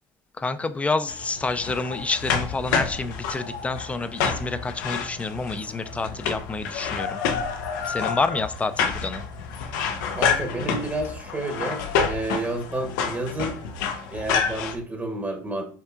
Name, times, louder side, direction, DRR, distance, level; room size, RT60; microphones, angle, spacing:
voice 1, 0.4-7.2 7.9-9.2, left 3 dB, 15° left, 12 dB, 0.4 m, -28 dB
sound 1, 1.1-14.8, left 6 dB, 85° left, 0.6 m, -28 dB
voice 2, 10.1-13.6 14.1-15.8, right 2 dB, 20° right, 3 dB, 0.9 m, -30 dB
5.6 x 3.5 x 2.4 m, 0.43 s
supercardioid pair, 105°, 10 cm